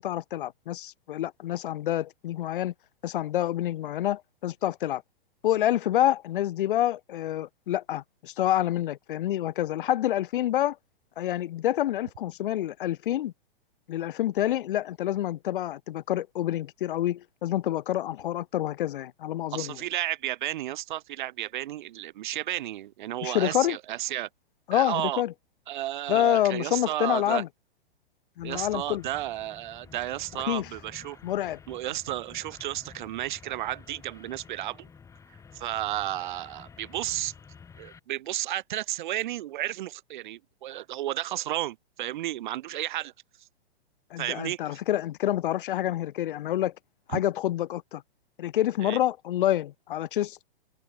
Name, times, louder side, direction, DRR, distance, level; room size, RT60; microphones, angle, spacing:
voice 1, 0.0-2.7 3.0-5.0 5.4-10.8 11.2-13.3 13.9-19.8 23.2-23.8 24.7-25.3 26.1-27.5 28.4-29.0 30.5-30.7 31.2-31.6 44.1-46.7 47.1-48.0 48.4-50.5, left 13 dB, 55° left, 0.7 m, -27 dB
voice 2, 19.5-24.3 24.7-25.2 25.7-27.4 28.4-31.2 31.7-34.9 35.5-37.3 37.8-43.1 43.4-43.5 44.2-44.8 47.1-47.2 48.8-49.0, right 14 dB, 50° right, 1.9 m, -32 dB
sound 1, 28.4-38.0, left 6 dB, 10° left, 4.0 m, -51 dB
hypercardioid pair, 160°, 31 cm